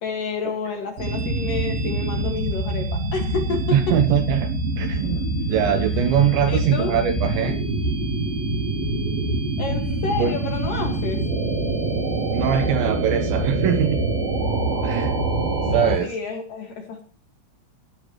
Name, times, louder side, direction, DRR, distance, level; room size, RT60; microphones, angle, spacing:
voice 1, 0.0-4.0 6.5-7.0 9.6-11.3 16.0-17.0, left 4 dB, 55° left, 2.7 m, -29 dB
sound 1, 1.0-16.0, right 2 dB, 45° right, 6.4 m, -25 dB
voice 2, 3.7-4.5 4.8-7.6 10.2-10.3 12.3-14.0 14.8-15.1 15.7-16.2, right 8 dB, 75° right, 2.7 m, -22 dB
18.5 x 13.0 x 3.1 m
omnidirectional pair, 5.9 m